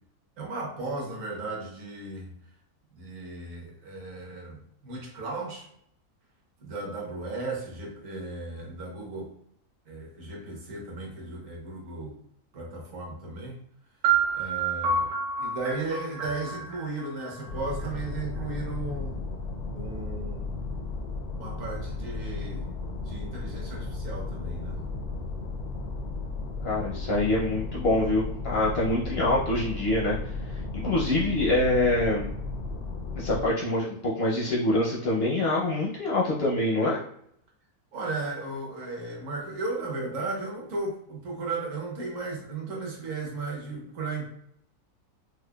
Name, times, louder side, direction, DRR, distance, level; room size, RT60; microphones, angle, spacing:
voice 1, 0.4-2.3 2.9-5.7 6.6-9.3 9.9-12.2 12.5-13.6 14.3-15.1 15.4-19.2 19.7-20.6 21.4-22.7 23.0-24.8 37.9-44.3, right 3 dB, 60° right, -1 dB, 1.2 m, -35 dB
sound 1, 14.0-17.9, right 5 dB, 80° right, 1.3 m, -29 dB
sound 2, 17.5-33.5, left 3 dB, 90° left, 1.1 m, -35 dB
voice 2, 26.6-30.2 30.7-32.3 33.2-37.0, left 1 dB, 60° left, -4 dB, 0.6 m, -25 dB
4.8 x 2.1 x 2.2 m, 0.70 s
omnidirectional pair, 1.6 m